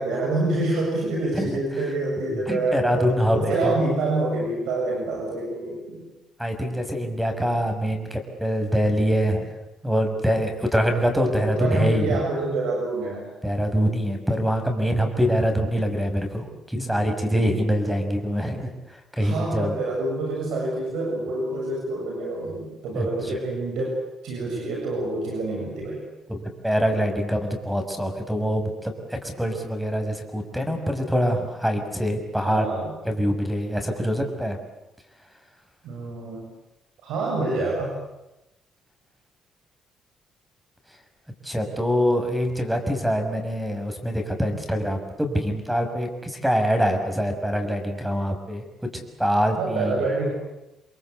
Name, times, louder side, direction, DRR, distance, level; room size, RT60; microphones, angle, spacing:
voice 1, 0.0-6.0 11.4-13.3 19.2-26.0 32.4-32.9 35.8-36.5 37.0-37.9 49.6-50.3, right 2 dB, 90° right, -1 dB, 7.6 m, -27 dB
voice 2, 2.5-3.8 6.4-9.5 9.8-12.2 13.4-18.7 19.2-19.7 23.0-23.3 26.3-32.7 33.0-34.6 41.4-48.6 49.2-50.0, equal, 5° right, 6 dB, 6.2 m, -24 dB
29.0 x 22.0 x 8.3 m, 0.94 s
cardioid pair, 90°, 0 cm